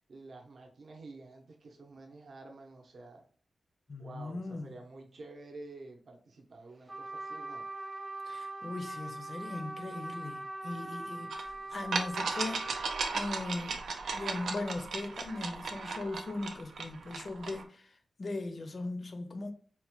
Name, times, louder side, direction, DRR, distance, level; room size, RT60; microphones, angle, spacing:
voice 1, 0.1-3.3 4.0-7.7, right 2 dB, 55° right, 0.7 m, -50 dB
voice 2, 3.9-4.7 8.2-12.8 13.1-13.8 14.1-19.5, left 2 dB, 40° left, 0.5 m, -39 dB
Trumpet, 6.9-13.1, right 2 dB, 15° right, 0.7 m, -41 dB
sound 1, 11.3-11.4 11.9-17.6, right 4 dB, 85° right, 0.4 m, -36 dB
4.1 x 2.1 x 2.9 m
wide cardioid pair, 170°, 0 cm